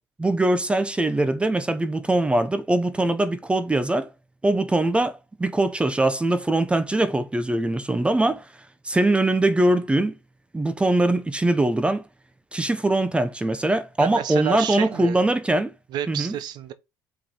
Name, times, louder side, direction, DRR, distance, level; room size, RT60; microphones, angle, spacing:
voice 1, 0.2-4.1 4.4-8.5 8.8-10.1 10.5-12.0 12.5-15.7 16.1-16.3, right 2 dB, 15° right, 0.8 m, -22 dB
voice 2, 14.0-15.2 15.9-16.7, right 10 dB, 65° right, 1.2 m, -30 dB
5.1 x 5.0 x 5.8 m
supercardioid pair, 85°, 8 cm